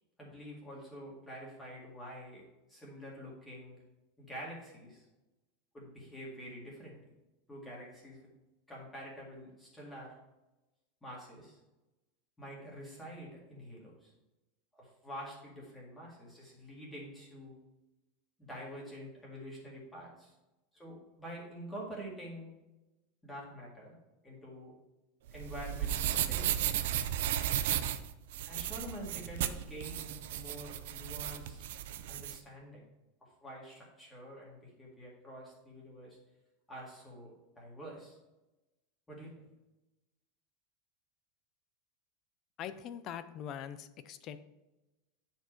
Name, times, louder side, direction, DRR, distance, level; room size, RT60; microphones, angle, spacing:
voice 1, 0.2-2.4 2.7-3.8 4.2-5.1 5.7-7.0 7.5-8.2 8.7-10.1 11.0-11.6 12.4-14.1 14.7-17.6 18.5-20.3 20.7-22.5 23.2-24.0 24.2-24.8 25.3-26.8 28.5-31.7 32.1-32.8 33.2-36.2 36.7-38.2 39.1-39.3, equal, 5° left, -4 dB, 2.0 m, -47 dB
sound 1, 25.3-32.4, right 11 dB, 60° right, 0.5 m, -34 dB
voice 2, 42.6-44.4, left 9 dB, 30° left, 12 dB, 0.4 m, -42 dB
9.6 x 4.5 x 4.5 m, 1.0 s
supercardioid pair, 180°, 0 cm